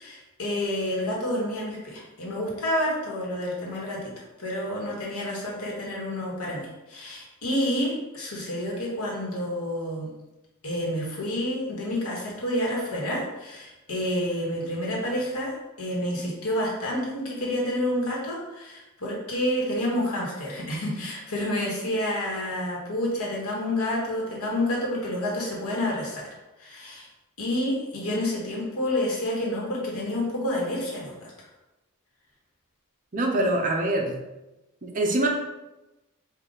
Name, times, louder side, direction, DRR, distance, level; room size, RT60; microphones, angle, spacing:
voice 1, 0.0-4.0 4.4-10.1 10.6-26.2 26.6-27.1 27.4-31.3, left 1 dB, 80° left, -3 dB, 1.3 m, -29 dB
voice 2, 33.1-34.2 34.8-35.3, right 1 dB, 35° right, 1 dB, 0.6 m, -24 dB
4.9 x 2.4 x 3.9 m, 1.0 s
head